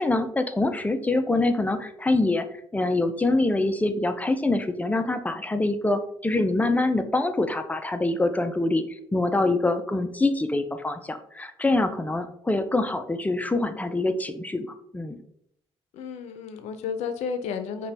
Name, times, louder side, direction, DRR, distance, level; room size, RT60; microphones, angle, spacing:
voice 1, 0.0-2.5 2.7-14.7 14.9-15.2, left 2 dB, 15° left, 8 dB, 0.5 m, -25 dB
voice 2, 15.9-17.9, left 6 dB, 90° left, 9 dB, 0.5 m, -32 dB
5.5 x 2.3 x 3.3 m, 0.71 s
cardioid pair, 75°, 11 cm